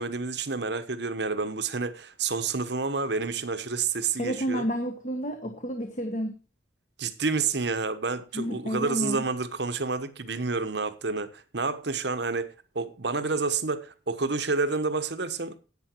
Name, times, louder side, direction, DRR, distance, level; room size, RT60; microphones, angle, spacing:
voice 1, 0.0-4.7 7.0-15.6, right 4 dB, 60° right, 1.1 m, -29 dB
voice 2, 4.2-6.3 8.3-9.2, equal, 40° left, 1.4 m, -30 dB
10.5 x 9.0 x 4.6 m
head